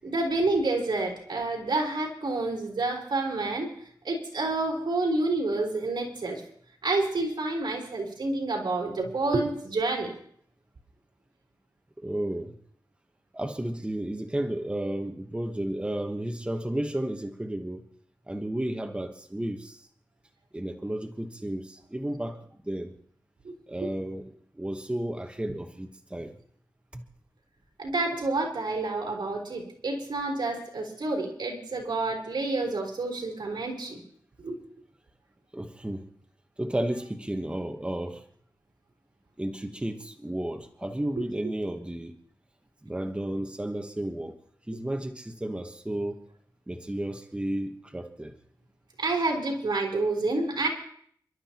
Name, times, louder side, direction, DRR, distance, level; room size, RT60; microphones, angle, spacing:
voice 1, 0.0-3.7 4.0-6.4 6.8-10.1 23.4-23.5 23.8-23.9 27.8-34.0 34.4-34.6 41.2-41.3 49.0-50.7, right 2 dB, 75° right, -1 dB, 3.7 m, -28 dB
voice 2, 12.0-12.5 13.3-17.9 18.3-19.9 20.5-22.9 23.7-26.3 26.9-27.0 35.5-36.1 36.6-38.2 39.4-42.1 42.8-44.3 44.7-46.2 46.7-48.3, right 1 dB, 15° right, 4 dB, 1.2 m, -33 dB
29.5 x 12.0 x 3.0 m, 0.62 s
wide cardioid pair, 85°, 8 cm